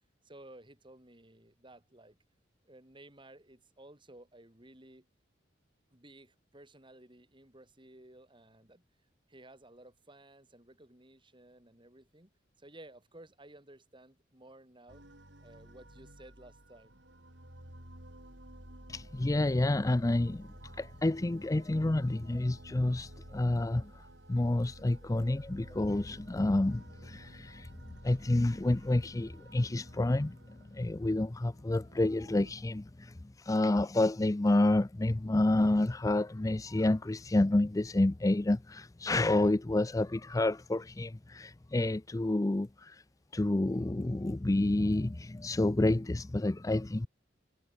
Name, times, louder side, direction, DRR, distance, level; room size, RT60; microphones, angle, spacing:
voice 1, 0.2-2.2 2.6-5.1 5.9-8.8 9.3-12.3 12.6-15.1 15.4-17.0, right 1 dB, 25° right, 4.5 m, -55 dB
sound 1, 14.9-32.5, right 1 dB, 70° right, 6.5 m, -53 dB
voice 2, 18.9-20.5 20.8-43.0 43.3-47.1, left 2 dB, 20° left, 0.5 m, -29 dB
head